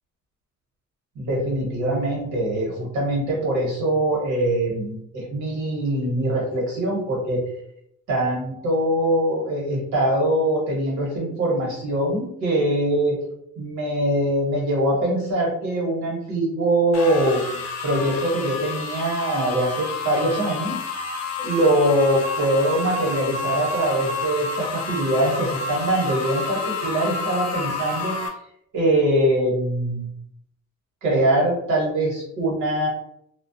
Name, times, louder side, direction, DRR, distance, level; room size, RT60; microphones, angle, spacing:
voice 1, 1.1-7.4 8.1-13.2 13.6-20.8 21.4-28.2 28.7-30.1 31.0-32.9, right 1 dB, 85° right, -3 dB, 1.1 m, -23 dB
sound 1, 16.9-28.3, left 3 dB, 55° left, 0.6 m, -30 dB
2.3 x 2.0 x 2.6 m, 0.74 s
cardioid pair, 90°, 30 cm